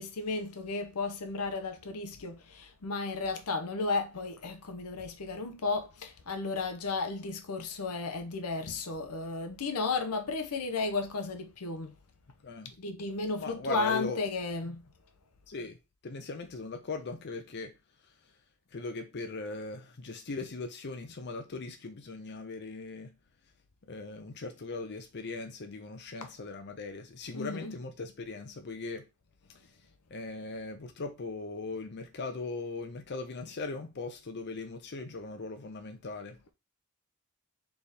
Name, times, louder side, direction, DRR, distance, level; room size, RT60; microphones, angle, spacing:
voice 1, 0.0-11.9 12.8-14.9 26.2-26.3 27.3-27.7, left 3 dB, 85° left, 0.8 m, -34 dB
voice 2, 13.4-14.2 14.6-14.8 15.5-15.8 16.0-17.7 18.7-23.2 23.9-29.1 30.1-36.4, left 3 dB, 50° left, 0.6 m, -39 dB
3.6 x 3.4 x 4.1 m
head